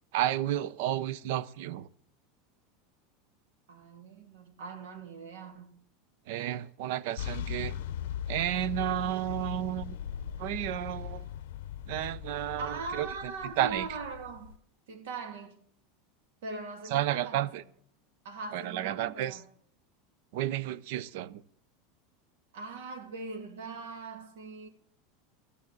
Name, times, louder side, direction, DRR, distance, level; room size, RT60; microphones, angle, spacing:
voice 1, 0.1-1.9 6.3-7.7 8.3-10.0 10.4-11.3 11.9-13.1 13.6-13.9 16.9-17.6 18.5-19.4 20.3-21.4, right 13 dB, 60° right, 0.7 m, -31 dB
voice 2, 3.7-5.8 12.6-14.5 14.9-15.6 16.4-17.6 18.2-19.4 22.5-24.7, right 4 dB, 85° right, 2.8 m, -41 dB
sound 1, 7.2-14.6, left 10 dB, 75° left, 0.6 m, -39 dB
13.5 x 8.4 x 7.5 m
supercardioid pair, 160°, 0 cm